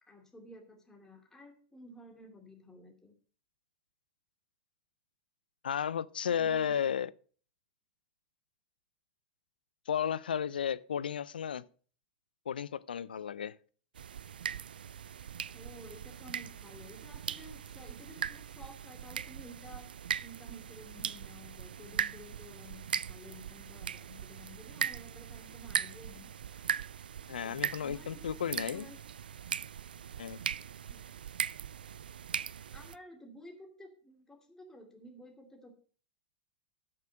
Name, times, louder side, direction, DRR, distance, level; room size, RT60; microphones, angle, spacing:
voice 1, 0.1-3.1 6.4-7.0 15.5-19.9 20.2-26.3 27.4-29.0 30.9-31.2 32.7-35.7, equal, 10° left, 2.5 m, -53 dB
voice 2, 5.6-7.1 9.9-11.6 12.5-13.5 27.3-28.9 30.2-30.4, left 8 dB, 85° left, 0.5 m, -33 dB
sound 1, 13.9-33.0, right 8 dB, 80° right, 0.4 m, -39 dB
8.5 x 6.7 x 6.3 m
hypercardioid pair, 105°, 5 cm